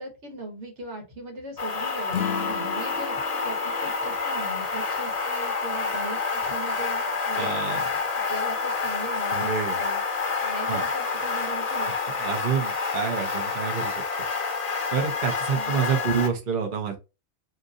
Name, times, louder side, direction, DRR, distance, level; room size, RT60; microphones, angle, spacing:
voice 1, 0.0-7.6 8.1-9.5 9.8-10.0 10.4-11.9 15.5-15.8, right 2 dB, 85° right, 3 dB, 1.4 m, -39 dB
sound 1, 1.6-16.3, left 4 dB, 40° left, 0.8 m, -28 dB
Acoustic guitar / Strum, 2.1-5.4, left 7 dB, 65° left, 0.9 m, -35 dB
voice 2, 7.3-7.8 9.3-9.8 10.7-10.8 12.1-13.9 14.9-16.9, right 6 dB, 50° right, 3 dB, 0.9 m, -27 dB
2.8 x 2.6 x 3.6 m, 0.27 s
omnidirectional pair, 1.2 m